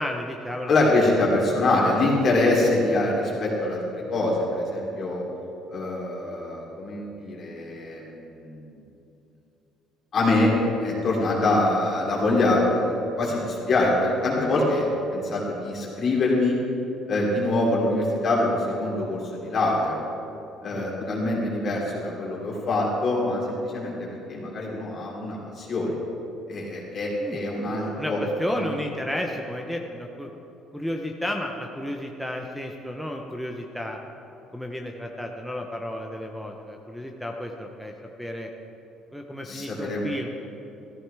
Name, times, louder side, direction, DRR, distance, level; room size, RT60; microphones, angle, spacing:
voice 1, 0.0-0.7 1.2-1.3 1.6-1.8 20.7-20.9 27.2-30.3 30.7-34.0 34.5-37.9 38.2-38.5 39.1-40.3, left 1 dB, ahead, 1 dB, 0.7 m, -32 dB
voice 2, 0.7-5.2 5.7-8.1 8.4-8.6 10.1-10.5 10.8-16.6 17.1-20.0 20.6-25.9 26.5-28.2 28.5-28.7 39.4-40.1, left 2 dB, 40° left, -4 dB, 3.1 m, -24 dB
14.5 x 14.0 x 3.4 m, 3.0 s
cardioid pair, 140°, 0 cm